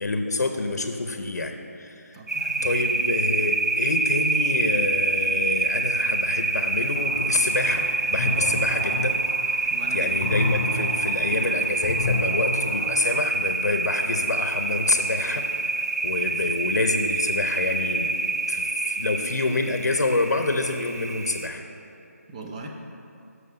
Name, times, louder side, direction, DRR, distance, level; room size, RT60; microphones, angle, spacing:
voice 1, 0.0-2.2 2.6-9.2 9.5-15.5 16.0-18.1 18.5-21.6, left 2 dB, 80° left, 6 dB, 0.7 m, -27 dB
voice 2, 2.1-2.7 9.7-10.3 22.3-22.7, right 3 dB, 25° right, 1 dB, 0.7 m, -39 dB
sound 1, 2.3-21.5, right 3 dB, 75° right, 1.0 m, -26 dB
sound 2, 6.9-13.0, left 2 dB, 20° left, 2.0 m, -30 dB
6.3 x 5.5 x 6.8 m, 2.8 s
figure-of-eight pair, 160°, 9 cm